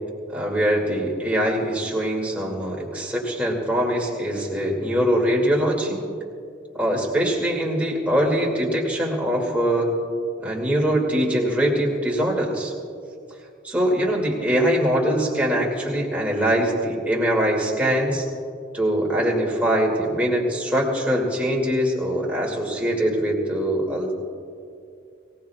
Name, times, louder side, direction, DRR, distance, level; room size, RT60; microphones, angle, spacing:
voice 1, 0.3-6.0 6.7-9.9 10.4-12.7 13.6-18.3 18.7-24.1, equal, 10° right, -2 dB, 2.4 m, -22 dB
24.0 x 17.5 x 2.4 m, 2.4 s
head